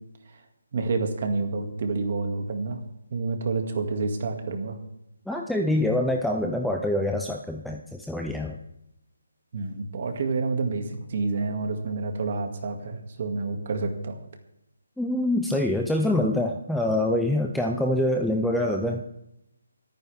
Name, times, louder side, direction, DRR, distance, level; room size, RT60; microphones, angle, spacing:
voice 1, 0.7-2.8 3.1-4.8 9.5-14.2, right 3 dB, 35° right, 5 dB, 2.0 m, -28 dB
voice 2, 5.3-8.6 15.0-19.0, left 1 dB, ahead, 1 dB, 0.5 m, -25 dB
25.0 x 9.3 x 3.5 m, 0.84 s
hypercardioid pair, 175°, 0 cm